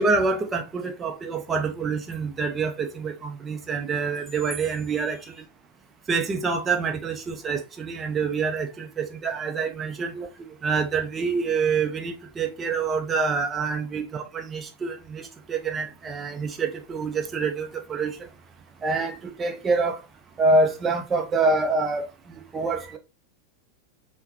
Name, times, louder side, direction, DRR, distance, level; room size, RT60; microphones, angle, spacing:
voice 1, 0.0-5.2 6.1-10.3 10.6-18.2 18.8-20.0 20.4-22.1 22.5-23.0, right 4 dB, 20° right, 0.6 m, -26 dB
5.6 x 2.2 x 2.7 m
figure-of-eight pair, 90°, 0 cm